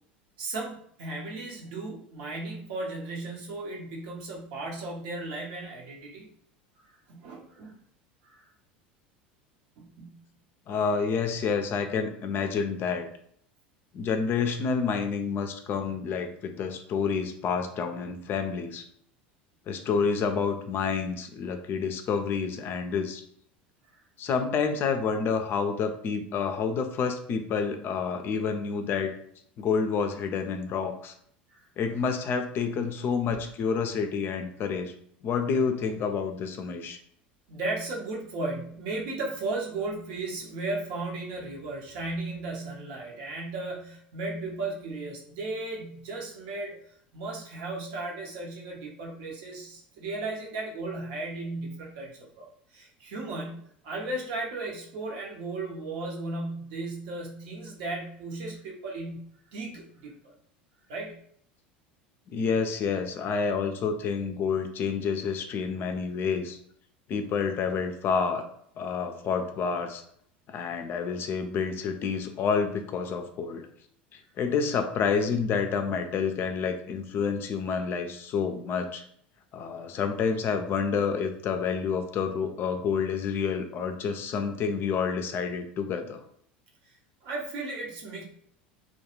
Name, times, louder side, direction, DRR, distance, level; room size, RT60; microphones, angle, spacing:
voice 1, 0.4-6.3 6.8-7.7 8.2-8.4 9.8-10.2 31.5-31.6 37.5-46.8 47.1-52.5 52.7-59.2 59.5-60.3 60.9-61.2 87.2-88.2, right 2 dB, 65° right, -2 dB, 0.8 m, -35 dB
voice 2, 10.7-13.1 13.9-18.8 19.7-23.2 24.2-29.1 29.6-31.1 31.8-34.9 35.2-37.0 62.3-66.6 67.1-68.5 68.8-70.0 70.5-73.7 74.4-79.0 79.5-86.2, left 5 dB, 40° left, 7 dB, 0.4 m, -29 dB
2.3 x 2.2 x 2.9 m, 0.65 s
hypercardioid pair, 80°, 5 cm